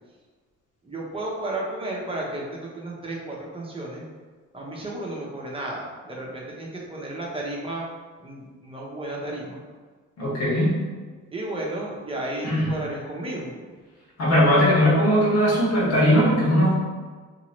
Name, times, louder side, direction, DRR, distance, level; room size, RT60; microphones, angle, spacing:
voice 1, 0.8-4.1 4.5-7.8 8.2-9.6 11.3-13.6, right 1 dB, 20° right, -3 dB, 0.9 m, -33 dB
voice 2, 10.2-10.7 12.4-12.7 14.2-16.7, equal, 55° left, -5 dB, 1.4 m, -19 dB
3.0 x 2.8 x 3.1 m, 1.4 s
cardioid pair, 90°, 30 cm